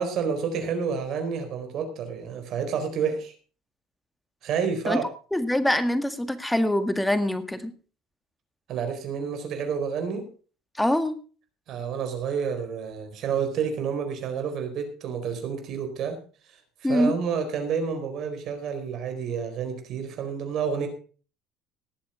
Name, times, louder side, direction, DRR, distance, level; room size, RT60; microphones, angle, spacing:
voice 1, 0.0-3.3 4.4-5.0 8.7-10.3 11.7-16.2 16.9-20.9, right 6 dB, 60° right, 7 dB, 4.2 m, -29 dB
voice 2, 5.3-7.7 10.8-11.1 16.8-17.1, left 1 dB, 5° left, 10 dB, 1.8 m, -24 dB
18.5 x 7.7 x 4.9 m, 0.38 s
supercardioid pair, 90°, 0 cm